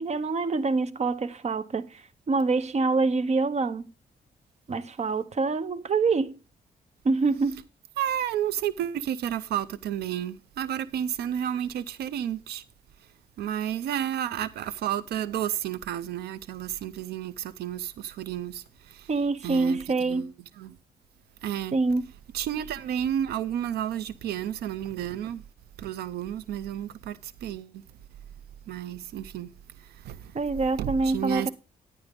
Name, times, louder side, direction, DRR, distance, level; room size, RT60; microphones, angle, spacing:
voice 1, 0.0-3.9 4.7-6.4 7.0-7.7 19.1-20.3 21.7-22.0 30.3-31.5, right 3 dB, 45° right, 1.0 m, -26 dB
voice 2, 8.0-12.6 13.4-19.1 19.4-19.8 20.1-20.3 20.6-20.8 21.4-21.8 22.3-25.4 25.8-27.8 28.7-29.5 29.8-30.3 30.8-31.5, right 10 dB, 90° right, 0.6 m, -31 dB
10.0 x 9.8 x 3.8 m
cardioid pair, 75°, 16 cm